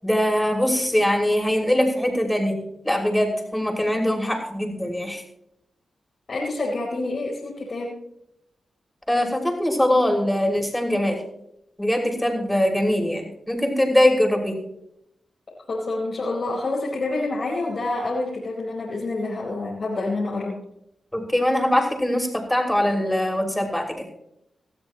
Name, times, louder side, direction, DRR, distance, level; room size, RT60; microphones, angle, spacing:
voice 1, 0.0-2.6 2.8-5.2 9.1-11.2 11.8-14.6 21.1-24.1, left 1 dB, 10° left, 2 dB, 5.8 m, -22 dB
voice 2, 6.3-8.0 15.7-20.6, left 2 dB, 60° left, -5 dB, 4.7 m, -27 dB
19.5 x 13.5 x 3.0 m, 0.78 s
supercardioid pair, 40°, 0 cm